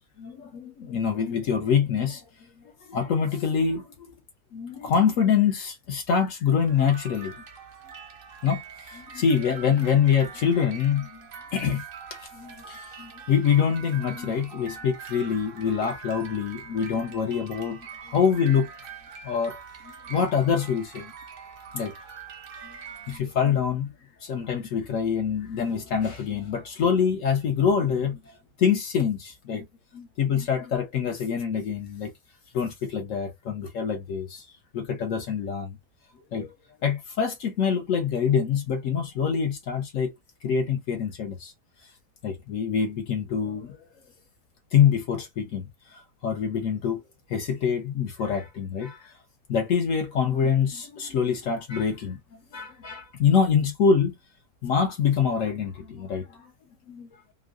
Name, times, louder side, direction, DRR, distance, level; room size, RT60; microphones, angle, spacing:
voice 1, 0.2-2.2 2.9-3.8 4.5-7.3 8.4-11.3 11.5-11.8 12.1-18.7 19.2-19.6 20.1-21.1 21.7-21.9 22.6-22.8 23.1-23.9 24.2-28.2 28.6-29.6 29.9-32.1 32.5-34.5 34.7-35.8 36.3-36.5 36.8-40.1 40.4-41.5 42.2-43.8 44.7-45.6 45.9-47.0 47.3-49.1 49.5-52.2 52.5-54.2 54.6-56.5 56.9-57.1, left 7 dB, 65° left, 0.8 m, -25 dB
sound 1, 6.6-23.2, right 6 dB, 50° right, 0.7 m, -44 dB
3.0 x 2.5 x 2.4 m
omnidirectional pair, 1.7 m